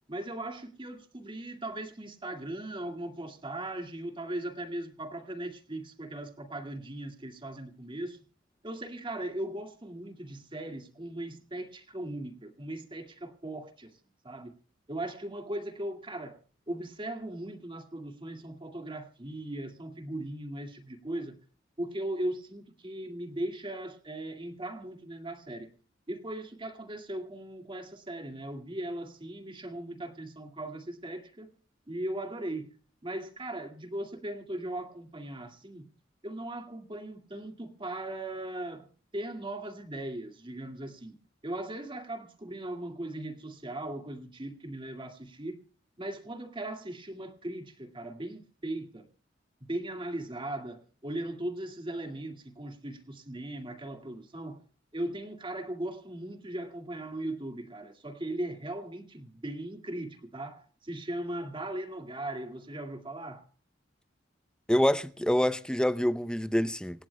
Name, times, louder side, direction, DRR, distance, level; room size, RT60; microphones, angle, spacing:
voice 1, 0.1-8.2 8.6-14.0 14.2-14.5 14.9-16.4 16.7-21.4 21.8-25.7 26.1-31.5 31.9-32.7 33.0-35.9 36.2-45.6 46.0-49.1 49.6-54.6 54.9-63.5, right 1 dB, 25° right, 2.1 m, -38 dB
voice 2, 64.7-67.1, left 1 dB, 5° left, 0.6 m, -26 dB
27.0 x 17.0 x 2.2 m
head